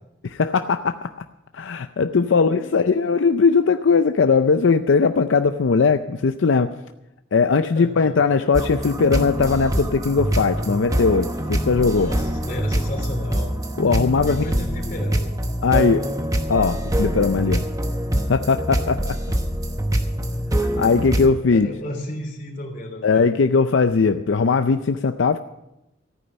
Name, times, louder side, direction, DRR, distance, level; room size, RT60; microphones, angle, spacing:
voice 1, 0.2-1.1 1.5-6.7 7.3-12.1 13.8-14.4 15.6-16.1 16.5-17.6 18.3-19.2 20.6-21.7 23.0-25.4, left 5 dB, 80° left, 9 dB, 0.5 m, -19 dB
voice 2, 2.3-3.1 7.7-8.1 11.7-13.5 14.2-15.3 21.4-23.2, left 1 dB, 45° left, 1 dB, 3.4 m, -33 dB
sound 1, 8.5-21.3, equal, 20° right, 0.9 m, -24 dB
14.0 x 9.6 x 6.9 m, 0.92 s
head